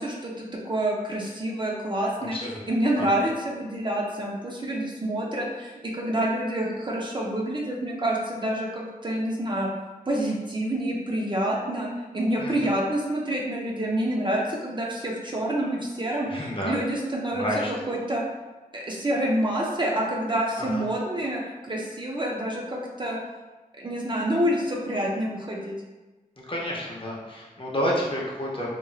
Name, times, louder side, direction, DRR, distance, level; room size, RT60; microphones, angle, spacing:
voice 1, 0.0-2.4 2.7-9.7 10.1-11.9 12.1-17.4 17.9-18.2 18.7-23.2 23.8-25.7, right 1 dB, 30° right, -3 dB, 0.5 m, -27 dB
voice 2, 2.2-2.6 3.0-3.1 12.4-12.6 16.3-16.7 17.3-17.7 20.6-20.8 26.5-28.7, equal, 35° left, -4 dB, 0.7 m, -30 dB
3.0 x 2.5 x 2.3 m, 1.2 s
wide cardioid pair, 80°, 15 cm